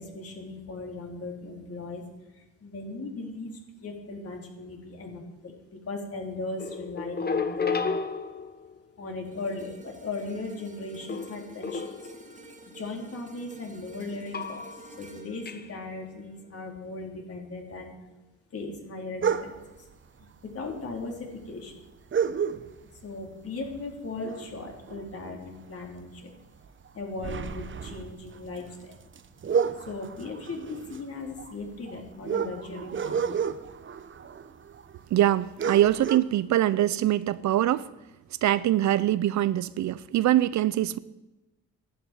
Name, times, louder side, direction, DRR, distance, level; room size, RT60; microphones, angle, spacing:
voice 1, 0.0-2.0 2.4-3.5 3.8-5.5 5.9-7.9 9.0-11.9 12.7-14.7 15.0-17.9 18.5-19.5 20.2-20.3 20.5-21.8 23.0-26.3 26.9-28.9 29.9-33.3, left 3 dB, 50° left, 4.2 m, -37 dB
sound 1, 6.6-8.8 11.1-12.3 14.3-15.0 15.5-15.7, left 5 dB, 30° left, 1.4 m, -32 dB
sound 2, 9.2-17.6 18.0-18.2, right 3 dB, 25° right, 2.4 m, -51 dB
sound 3, 19.2-19.8 20.8-20.9 21.1-21.2 22.1-23.0 23.4-23.7 24.0-25.6 26.0-26.2 26.6-35.0 35.3-35.4 35.6-36.2, right 7 dB, 40° right, 1.1 m, -31 dB
voice 2, 35.1-37.9 38.4-41.0, right 13 dB, 70° right, 0.7 m, -23 dB
13.0 x 11.5 x 9.4 m
cardioid pair, 90°, 30 cm